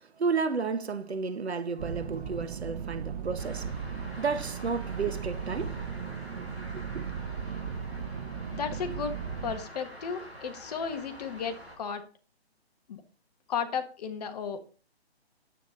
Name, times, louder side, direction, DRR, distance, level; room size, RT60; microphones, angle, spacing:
voice 1, 0.0-5.8 6.4-6.5 6.7-7.0, right 5 dB, 75° right, 1.5 m, -32 dB
sound 1, 1.8-9.5, right 7 dB, 35° right, 1.1 m, -37 dB
sound 2, 3.4-11.8, equal, ahead, 6.0 m, -47 dB
voice 2, 8.5-9.1 9.4-12.0 12.9-13.0 13.5-14.6, left 6 dB, 40° left, 1.5 m, -34 dB
9.3 x 8.4 x 3.9 m
hypercardioid pair, 150°, 32 cm